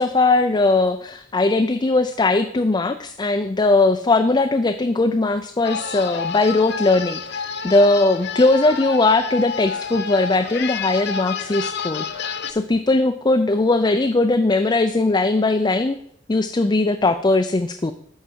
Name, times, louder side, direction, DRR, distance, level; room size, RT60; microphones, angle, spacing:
voice 1, 0.0-16.0 16.3-17.9, left 2 dB, 20° left, 7 dB, 0.4 m, -19 dB
sound 1, 5.6-12.5, left 5 dB, 55° left, 0.8 m, -29 dB
11.0 x 6.8 x 4.5 m, 0.67 s
head